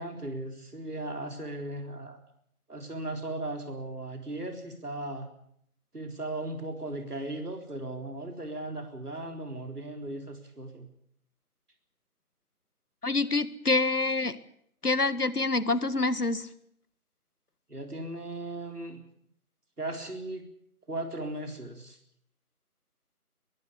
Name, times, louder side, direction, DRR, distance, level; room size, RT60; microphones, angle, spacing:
voice 1, 0.0-2.2 2.7-5.3 5.9-10.9 17.7-19.0 19.8-20.4 20.9-22.0, right 2 dB, 85° right, 5 dB, 4.1 m, -37 dB
voice 2, 13.0-14.4 14.8-16.5, left 3 dB, 85° left, 16 dB, 1.8 m, -26 dB
22.0 x 16.0 x 8.6 m, 0.69 s
figure-of-eight pair, 180°, 45 cm